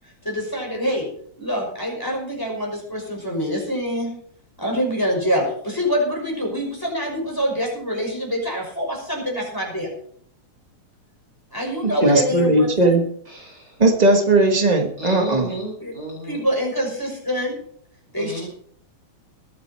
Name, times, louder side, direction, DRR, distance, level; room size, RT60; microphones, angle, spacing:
voice 1, 0.2-1.1 1.4-4.1 4.6-9.9 11.5-13.0 15.8-15.9 16.2-17.5 18.1-18.5, equal, 5° left, -1 dB, 5.6 m, -25 dB
voice 2, 12.0-13.0 13.8-15.5, right 2 dB, 55° right, 3 dB, 0.4 m, -17 dB
voice 3, 13.3-13.7 15.0-16.4 18.1-18.5, equal, 30° right, 0 dB, 5.4 m, -32 dB
21.5 x 9.3 x 4.4 m, 0.62 s
omnidirectional pair, 3.4 m